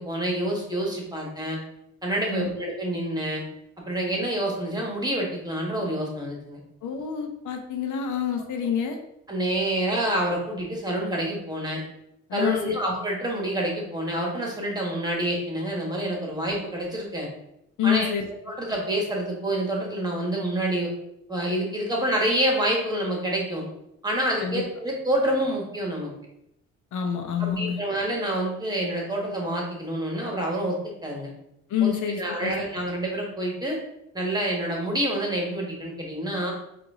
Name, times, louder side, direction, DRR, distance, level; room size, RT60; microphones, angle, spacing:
voice 1, 0.0-1.6 2.0-3.4 3.8-6.6 9.3-11.8 12.3-17.3 17.8-18.1 18.5-20.9 21.3-23.6 24.0-26.1 27.4-31.3 31.8-33.8 34.1-36.5, right 1 dB, 15° right, -1 dB, 1.4 m, -27 dB
voice 2, 6.8-9.0 12.3-12.8 17.8-18.3 24.4-24.6 26.9-27.8 31.7-32.7, left 8 dB, 75° left, 4 dB, 0.7 m, -27 dB
4.7 x 2.6 x 3.7 m, 0.80 s
cardioid pair, 90°, 30 cm